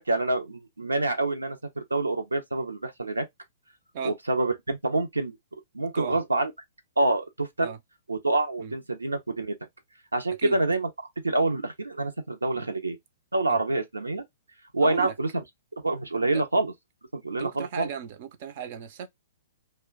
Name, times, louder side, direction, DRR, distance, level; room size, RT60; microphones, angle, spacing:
voice 1, 0.0-3.3 4.0-5.4 5.7-6.5 7.0-7.7 8.1-9.5 10.1-13.0 13.3-14.2 14.7-15.3 15.8-16.7 17.1-17.9, right 2 dB, 90° right, 0.6 m, -27 dB
voice 2, 14.8-15.1 16.3-16.4 17.4-19.1, right 7 dB, 50° right, 0.5 m, -36 dB
2.4 x 2.1 x 3.6 m
figure-of-eight pair, 115°, 0 cm